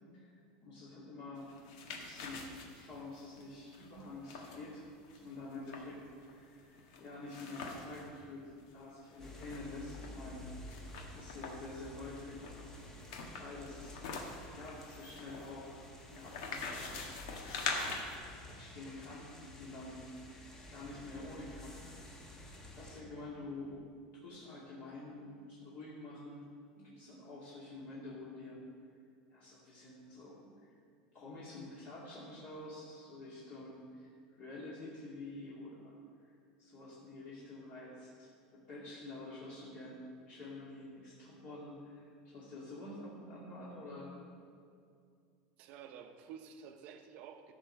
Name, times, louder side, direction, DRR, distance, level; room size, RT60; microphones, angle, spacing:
voice 1, 0.1-4.8 5.1-10.4 11.0-12.5 13.2-14.1 14.5-17.1 18.5-19.3 19.6-22.2 22.7-23.8 24.2-26.4 26.8-28.6 29.3-30.7 31.1-34.1 34.4-35.9 36.6-40.0 40.3-44.2, left 2 dB, 40° left, -8 dB, 2.3 m, -48 dB
sound 1, 1.4-8.1 8.5-8.6 8.8-10.1 10.7-11.7 12.4-18.2, left 4 dB, 65° left, 1.6 m, -44 dB
sound 2, 9.2-23.0, left 2 dB, 15° left, 1.1 m, -51 dB
voice 2, 45.6-47.5, right 7 dB, 45° right, 7 dB, 0.8 m, -51 dB
13.5 x 4.7 x 6.6 m, 2.3 s
supercardioid pair, 160°, 3 cm